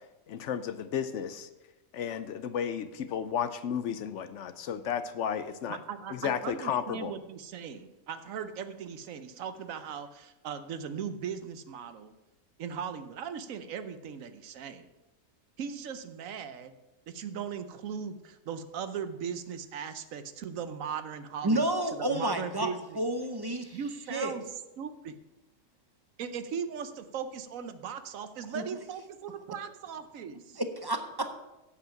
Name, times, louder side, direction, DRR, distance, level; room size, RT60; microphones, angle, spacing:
voice 1, 0.3-1.5 1.9-5.8 6.1-7.1, left 8 dB, 65° left, 12 dB, 0.9 m, -33 dB
voice 2, 5.7-12.1 12.6-14.8 15.6-16.7 17.1-23.0 23.7-24.4 24.8-25.2 26.2-30.6, right 7 dB, 75° right, 11 dB, 1.1 m, -38 dB
voice 3, 21.4-22.7 23.0-23.8 24.1-24.3 28.5-28.6 30.6-31.4, right 1 dB, 30° right, 7 dB, 0.4 m, -30 dB
8.4 x 8.0 x 5.8 m, 1.0 s
omnidirectional pair, 1.4 m